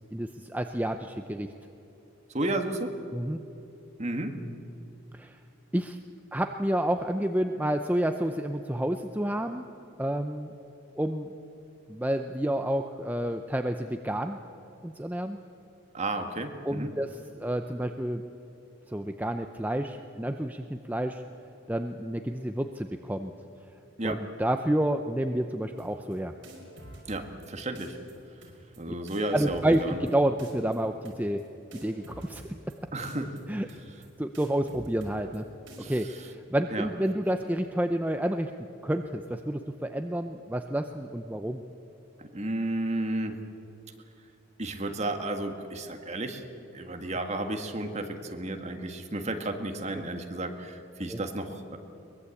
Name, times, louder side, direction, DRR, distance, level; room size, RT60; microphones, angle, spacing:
voice 1, 0.1-1.5 3.1-3.4 5.1-5.4 5.7-6.0 6.3-9.6 10.0-10.5 11.0-11.3 11.9-14.4 14.8-15.4 16.6-18.2 18.9-21.2 21.7-23.3 24.0-26.3 29.3-31.4 31.7-32.6 33.5-33.7 34.2-35.4 35.9-38.5 38.8-41.6 51.1-51.2, right 1 dB, 10° right, 6 dB, 0.6 m, -29 dB
voice 2, 2.3-2.9 4.0-4.3 15.9-16.9 24.0-24.2 27.1-28.0 28.8-30.0 32.9-33.4 35.8-36.2 36.7-36.9 42.2-43.4 44.6-46.4 46.7-51.8, right 2 dB, 35° right, 5 dB, 1.8 m, -32 dB
sound 1, 25.8-26.1 26.4-27.5 27.8-28.1 28.4-28.8 29.1-30.1 30.4-30.8 31.0-31.4 31.7-32.7 33.0-33.4 33.7-34.1 34.3-35.4 35.7-36.0, right 1 dB, 65° right, 5.5 m, -48 dB
22.5 x 21.5 x 8.4 m, 2.8 s
head